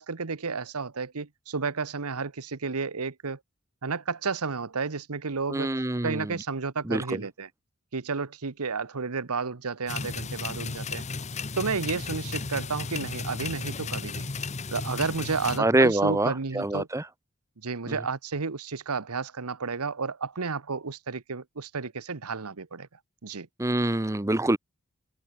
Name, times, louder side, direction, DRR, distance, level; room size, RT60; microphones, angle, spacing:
voice 1, 0.0-3.4 3.8-5.7 6.0-7.5 7.9-11.0 11.6-14.3 14.7-16.9 17.6-22.9 23.2-23.5, right 4 dB, 80° right, 1.1 m, -32 dB
voice 2, 5.5-6.3 6.9-7.2 15.6-17.0 23.6-24.6, right 1 dB, 15° right, 0.7 m, -25 dB
sound 1, 9.9-15.6, left 4 dB, 30° left, 0.9 m, -34 dB
head